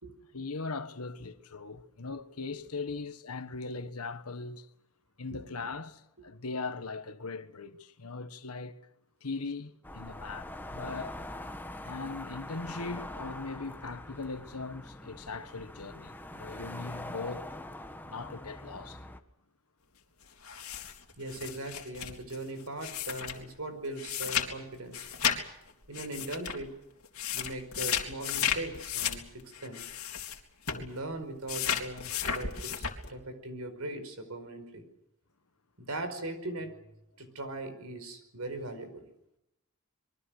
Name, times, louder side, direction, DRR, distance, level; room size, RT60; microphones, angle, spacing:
voice 1, 0.3-4.7 5.2-8.8 9.2-11.2 11.8-17.5 18.1-19.0, left 3 dB, 85° left, 1.4 m, -39 dB
sound 1, 9.8-19.2, left 1 dB, 10° left, 1.5 m, -43 dB
sound 2, 20.4-23.5 24.0-24.5 24.7-25.4 25.9-26.6 27.0-30.4 30.7-30.9 31.5-33.1, left 8 dB, 70° left, 3.3 m, -33 dB
voice 2, 21.2-25.1 25.9-26.7 27.3-29.8 30.7-34.8 35.8-36.7 37.2-39.1, right 1 dB, 80° right, 5.1 m, -40 dB
26.5 x 23.0 x 6.5 m
head